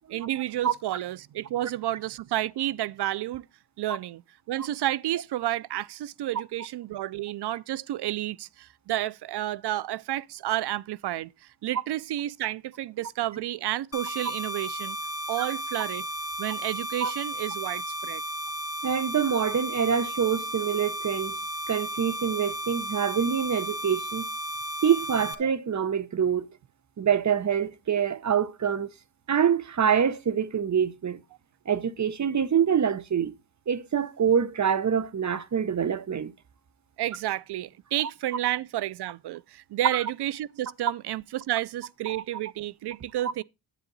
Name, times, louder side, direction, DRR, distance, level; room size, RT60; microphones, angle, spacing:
voice 1, 0.1-3.5 3.8-4.2 4.5-11.3 11.6-15.0 15.3-16.1 16.4-18.2 37.0-43.4, right 14 dB, 90° right, 0.6 m, -31 dB
sound 1, 13.9-25.3, right 1 dB, 40° left, 1.6 m, -34 dB
voice 2, 18.8-21.4 21.7-24.3 24.8-26.5 27.0-28.9 29.3-31.2 31.7-33.3 33.7-36.3 42.1-42.2, right 7 dB, 45° right, 0.9 m, -25 dB
10.0 x 9.0 x 4.0 m
cardioid pair, 100°, 39 cm